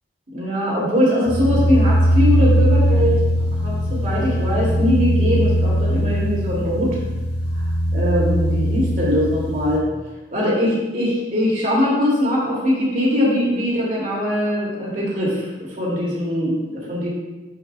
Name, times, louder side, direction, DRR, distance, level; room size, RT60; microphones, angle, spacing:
voice 1, 0.3-3.2 3.6-6.9 7.9-9.8 10.3-17.1, left 1 dB, 50° right, -5 dB, 2.5 m, -21 dB
sound 1, 1.3-9.8, equal, 75° left, 2.3 m, -20 dB
11.5 x 5.5 x 2.3 m, 1.1 s
head